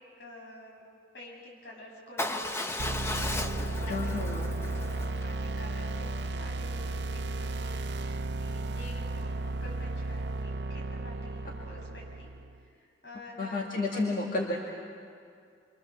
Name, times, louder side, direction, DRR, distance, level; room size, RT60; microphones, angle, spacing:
voice 1, 0.2-2.5 3.0-14.0, left 1 dB, 90° left, -2 dB, 6.5 m, -49 dB
Motorcycle / Engine starting / Idling, 2.2-6.3, left 1 dB, 15° left, 0.7 m, -36 dB
sound 1, 2.8-12.6, right 2 dB, 75° right, 0.7 m, -34 dB
voice 2, 3.9-4.5 13.4-14.6, left 2 dB, 50° left, -2 dB, 2.1 m, -31 dB
27.0 x 25.0 x 7.0 m, 2.3 s
head